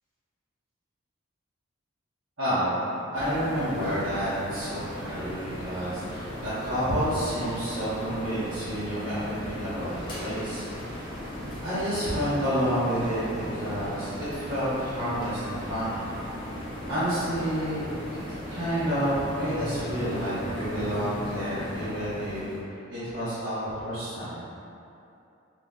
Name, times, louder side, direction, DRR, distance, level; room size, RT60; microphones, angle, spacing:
voice 1, 2.4-11.0 11.6-16.1 16.9-17.9 18.5-24.4, equal, 65° right, -14 dB, 0.8 m, -29 dB
sound 1, 3.1-22.6, equal, 25° left, 0.5 m, -37 dB
2.6 x 2.0 x 3.3 m, 2.7 s
head